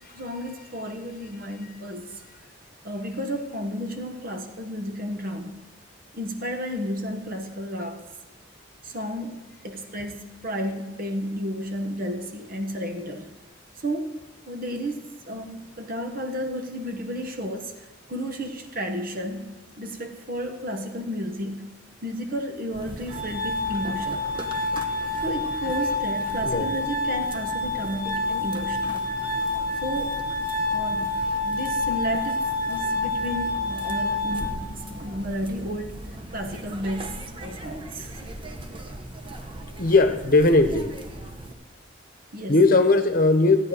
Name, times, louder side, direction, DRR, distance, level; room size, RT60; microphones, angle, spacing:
voice 1, 0.1-2.2 2.8-5.6 6.1-8.0 8.8-13.3 13.8-21.7 22.0-24.3 25.2-29.0 29.8-30.3 30.7-38.1 42.3-42.6, equal, 50° right, 6 dB, 1.3 m, -32 dB
sound 1, 22.7-41.5, right 1 dB, 30° right, 1.1 m, -39 dB
Glass, 23.1-35.1, left 2 dB, 80° right, 2.7 m, -28 dB
voice 2, 39.8-40.9 42.5-43.6, left 3 dB, 50° left, 8 dB, 1.0 m, -18 dB
15.0 x 9.5 x 5.0 m, 1.1 s
head